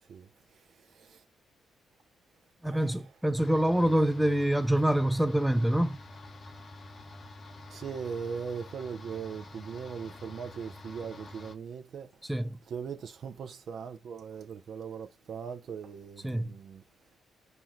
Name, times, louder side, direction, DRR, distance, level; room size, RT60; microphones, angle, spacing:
voice 1, 0.9-1.2 2.6-3.0 7.7-12.1 12.7-16.8, right 6 dB, 60° right, 0.5 m, -39 dB
voice 2, 2.6-6.0 12.2-12.6 16.2-16.5, right 1 dB, 5° right, 0.5 m, -26 dB
sound 1, 3.4-11.6, left 2 dB, 45° left, 0.6 m, -48 dB
4.4 x 2.2 x 3.1 m
hypercardioid pair, 40°, 0 cm